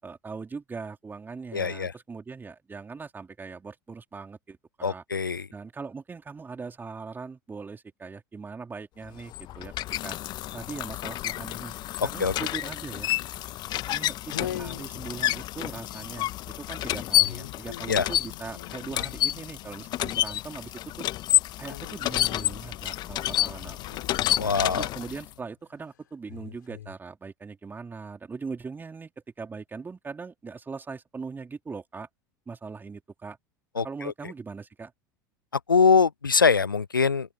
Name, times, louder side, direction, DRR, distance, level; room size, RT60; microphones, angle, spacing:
voice 1, 0.0-5.0 5.5-9.7 10.0-10.2 10.5-11.7 12.0-13.1 13.8-21.1 21.6-24.0 24.4-29.1 29.4-32.1 32.5-33.4 33.7-34.9, right 4 dB, 20° right, 4.6 m, -40 dB
voice 2, 1.5-1.9 4.8-5.5 12.2-12.3 17.9-18.1 24.4-24.9 33.8-33.9 35.7-37.3, left 5 dB, 90° left, 0.4 m, -22 dB
sound 1, 9.1-25.3, left 14 dB, 40° left, 1.7 m, -29 dB
sound 2, 13.9-14.0 14.2-16.4 17.2-20.6 21.7-25.5 26.3-27.0, left 11 dB, 70° left, 6.4 m, -43 dB
open air
figure-of-eight pair, 80°, 11 cm